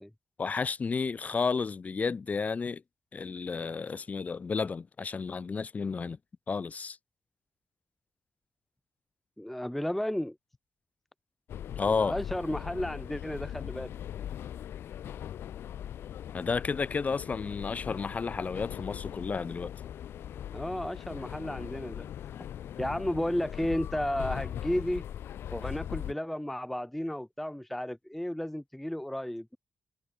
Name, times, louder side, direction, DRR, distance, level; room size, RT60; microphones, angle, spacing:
voice 1, 0.4-2.8 3.1-6.2 6.5-7.0 11.8-12.1 16.3-19.7, left 5 dB, 40° left, 0.9 m, -32 dB
voice 2, 9.4-10.4 12.0-13.9 20.5-22.1 22.8-25.0 25.5-29.6, left 1 dB, 5° left, 0.4 m, -33 dB
sound 1, 11.5-26.1, left 10 dB, 80° left, 3.6 m, -40 dB
cardioid pair, 80°, 4 cm